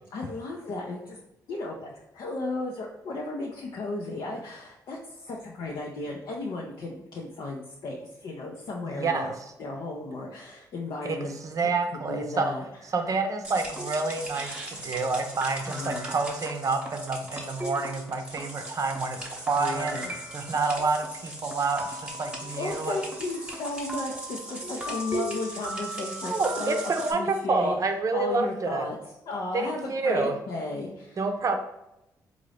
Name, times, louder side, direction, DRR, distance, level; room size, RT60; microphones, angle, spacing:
voice 1, 0.1-1.2 1.5-9.3 9.6-11.7 12.1-12.7 15.7-16.1 19.5-20.1 22.4-27.7 28.1-29.0 29.3-31.2, left 2 dB, 65° left, -2 dB, 0.6 m, -34 dB
voice 2, 8.8-9.3 11.0-12.5 12.9-20.0 20.3-23.0 26.2-28.9 29.5-30.3 31.2-31.6, right 3 dB, 45° right, 5 dB, 0.6 m, -28 dB
sound 1, 13.4-27.1, right 1 dB, 15° right, 1.0 m, -37 dB
3.8 x 2.6 x 3.3 m, 0.87 s
supercardioid pair, 60°, 8 cm